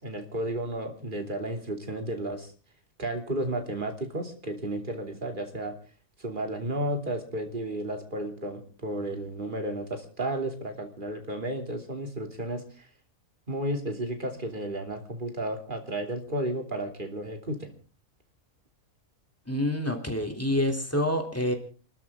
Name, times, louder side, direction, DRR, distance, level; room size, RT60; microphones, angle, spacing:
voice 1, 0.0-2.5 3.0-5.7 6.2-12.9 13.5-17.7, right 1 dB, 35° right, 4 dB, 3.1 m, -33 dB
voice 2, 19.5-21.5, left 1 dB, 10° left, 3 dB, 3.2 m, -27 dB
28.0 x 13.5 x 3.7 m, 0.37 s
omnidirectional pair, 1.4 m